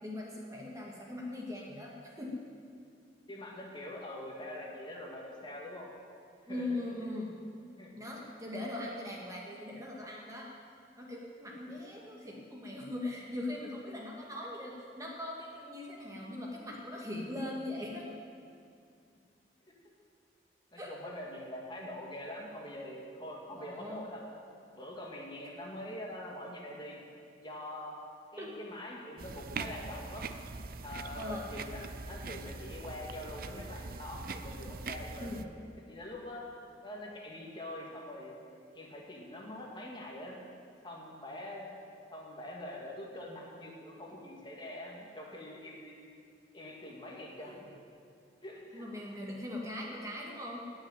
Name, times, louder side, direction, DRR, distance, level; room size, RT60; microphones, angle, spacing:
voice 1, 0.0-2.4 6.5-7.3 8.0-10.5 11.0-18.1 20.8-21.1 23.5-24.1 28.4-28.5 31.2-31.5 35.2-35.4 47.4-47.6 48.7-50.7, left 1 dB, 20° right, -2 dB, 1.8 m, -40 dB
voice 2, 3.3-5.9 6.5-6.6 7.8-7.9 19.7-19.8 20.7-24.3 24.8-27.0 27.4-27.9 28.3-30.3 30.8-35.3 35.9-36.5 36.8-38.4 38.7-40.4 40.8-41.7 42.1-46.0 46.5-47.7 48.4-48.9, left 1 dB, 25° left, -2 dB, 2.1 m, -44 dB
sound 1, 29.2-35.4, right 4 dB, 55° right, 0.6 m, -42 dB
18.0 x 6.4 x 9.1 m, 2.3 s
head